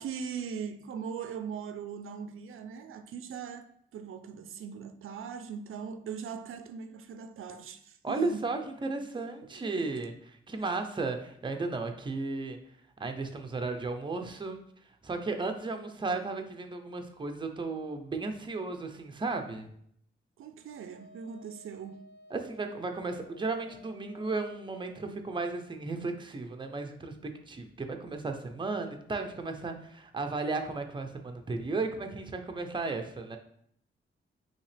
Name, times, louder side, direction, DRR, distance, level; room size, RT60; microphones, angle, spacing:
voice 1, 0.0-8.4 9.6-9.8 20.4-22.0, right 7 dB, 85° right, 0.4 m, -40 dB
voice 2, 8.0-12.6 13.0-14.6 15.0-19.7 22.3-27.1 27.5-33.4, right 3 dB, 25° right, 0.6 m, -34 dB
Wind instrument woodwind instrument, 20.7-25.1, left 1 dB, 60° left, 0.8 m, -56 dB
5.5 x 2.9 x 3.3 m
wide cardioid pair, 110°, 21 cm